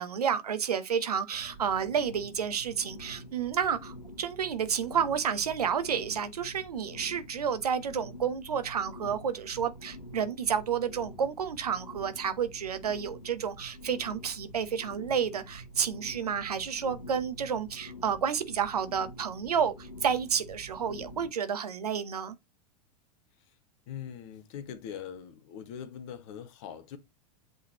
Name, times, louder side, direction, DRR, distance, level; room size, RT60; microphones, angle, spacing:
voice 1, 0.0-22.4, right 7 dB, 70° right, 1.0 m, -30 dB
sound 1, 1.3-21.3, equal, 90° left, 1.1 m, -47 dB
voice 2, 23.9-27.0, left 8 dB, 45° left, 1.4 m, -42 dB
8.1 x 4.1 x 3.0 m
figure-of-eight pair, 90°, 21 cm